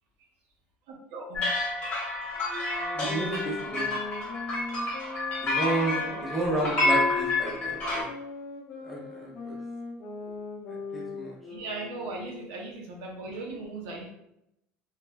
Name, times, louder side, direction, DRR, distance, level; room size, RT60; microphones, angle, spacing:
voice 1, 0.9-1.4 4.7-4.9 5.9-6.7 7.0-7.1 7.8-8.1 8.7-8.8 10.2-10.3 11.4-14.1, right 2 dB, 65° right, 0 dB, 0.7 m, -39 dB
sound 1, 1.3-8.0, left 2 dB, 25° left, 1.1 m, -29 dB
sound 2, 2.5-12.5, left 5 dB, 55° left, 0.6 m, -39 dB
voice 2, 2.9-4.0 5.4-8.1 8.9-9.6 10.9-11.3, right 2 dB, ahead, -4 dB, 0.5 m, -32 dB
3.2 x 2.1 x 2.3 m, 0.81 s
cardioid pair, 160°, 4 cm